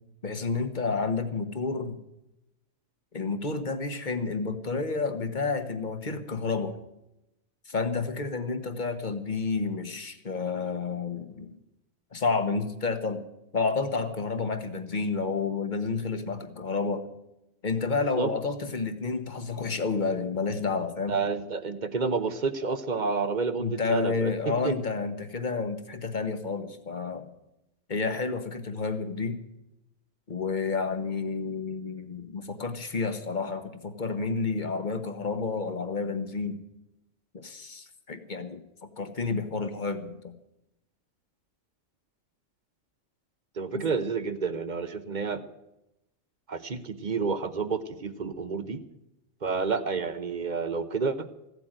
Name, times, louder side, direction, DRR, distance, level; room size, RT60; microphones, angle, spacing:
voice 1, 0.2-2.0 3.1-6.7 7.7-11.6 12.1-13.2 13.5-17.0 17.6-21.2 23.6-27.3 27.9-29.4 30.3-36.6 37.3-40.3 43.7-43.8, left 4 dB, 35° left, 9 dB, 1.3 m, -30 dB
voice 2, 21.1-24.7 43.6-45.4 46.5-48.8 49.4-51.3, right 4 dB, 40° right, 11 dB, 0.9 m, -29 dB
16.0 x 8.1 x 9.0 m, 0.89 s
omnidirectional pair, 1.4 m